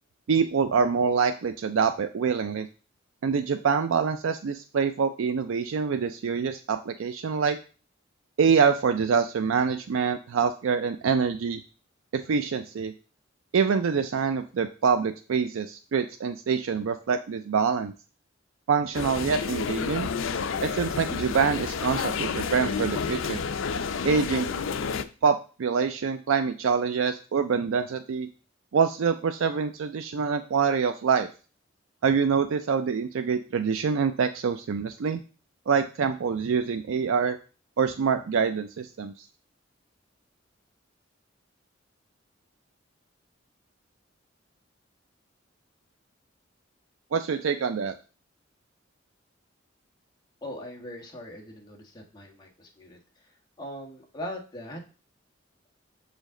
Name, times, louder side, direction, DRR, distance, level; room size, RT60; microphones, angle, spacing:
voice 1, 0.3-2.7 3.2-7.6 8.4-11.6 12.1-12.9 13.5-17.9 18.7-20.1 20.6-23.4 24.0-24.5 25.2-28.3 28.7-31.3 32.0-35.2 35.7-37.4 37.8-39.3 47.1-48.0, right 6 dB, 85° right, 8 dB, 0.4 m, -25 dB
sound 1, 18.9-25.0, left 5 dB, 75° left, 0.5 m, -30 dB
voice 2, 50.4-53.0 53.6-54.8, left 1 dB, 20° left, -1 dB, 1.4 m, -40 dB
6.4 x 5.1 x 3.7 m, 0.35 s
head